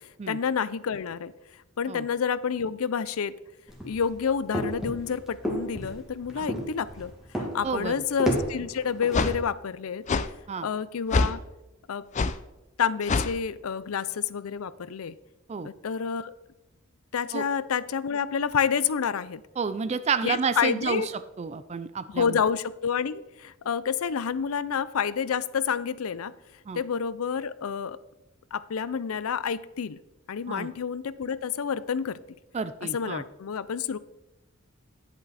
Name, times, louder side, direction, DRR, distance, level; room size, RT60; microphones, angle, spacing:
voice 1, 0.3-1.3 1.8-3.3 3.8-10.0 10.6-11.4 11.9-12.0 12.8-15.1 15.6-16.3 17.1-19.4 20.2-21.1 22.1-26.3 26.7-28.0 28.5-30.0 30.3-32.2 32.8-34.0, left 7 dB, 85° left, 17 dB, 0.5 m, -29 dB
sound 1, 3.7-9.3, equal, ahead, 1.7 m, -32 dB
voice 2, 7.6-7.9 10.5-10.7 15.5-15.7 17.3-17.5 19.6-21.1 21.4-22.4 26.7-26.8 30.5-30.7 32.5-33.2, right 5 dB, 30° right, 13 dB, 0.3 m, -30 dB
sound 2, 8.3-8.4 9.1-9.4 10.1-10.3 11.1-11.4 12.1-12.4 13.1-13.3, left 3 dB, 35° left, 0.4 m, -25 dB
10.5 x 8.1 x 4.1 m, 0.97 s
head